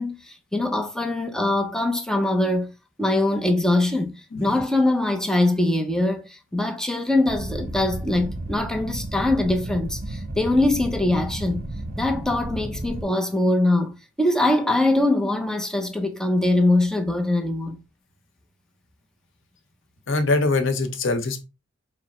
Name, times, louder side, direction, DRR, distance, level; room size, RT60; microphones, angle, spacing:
voice 1, 0.0-2.7 3.0-4.1 4.4-11.7 12.0-13.9 14.2-17.8, left 2 dB, 5° left, 0.6 m, -22 dB
sound 1, 7.3-13.0, right 1 dB, 50° right, 0.7 m, -33 dB
voice 2, 20.1-21.4, left 3 dB, 70° left, 0.8 m, -23 dB
4.8 x 2.1 x 4.2 m
head